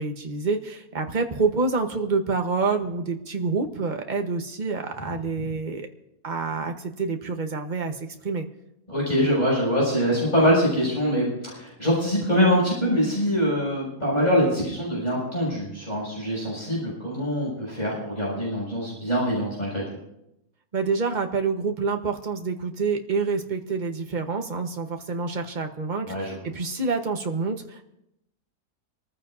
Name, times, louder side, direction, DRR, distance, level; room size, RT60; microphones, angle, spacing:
voice 1, 0.0-5.9 6.2-8.4 20.7-27.8, right 4 dB, 30° right, 5 dB, 1.2 m, -27 dB
voice 2, 8.9-19.8 26.0-26.4, equal, 25° left, -5 dB, 7.4 m, -24 dB
26.0 x 14.5 x 2.7 m, 0.83 s
omnidirectional pair, 1.6 m